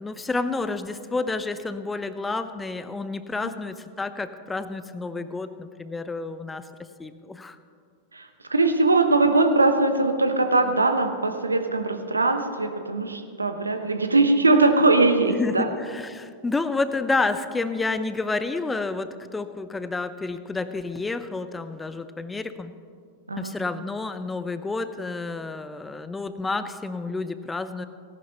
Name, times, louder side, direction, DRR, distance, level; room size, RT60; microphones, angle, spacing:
voice 1, 0.0-6.7 7.0-7.6 15.3-22.7 23.3-27.9, left 3 dB, 10° left, 12 dB, 0.6 m, -30 dB
voice 2, 8.5-15.7 23.3-23.6, right 2 dB, 80° right, 7 dB, 1.0 m, -21 dB
18.0 x 11.0 x 3.0 m, 2.2 s
figure-of-eight pair, 90°, 0 cm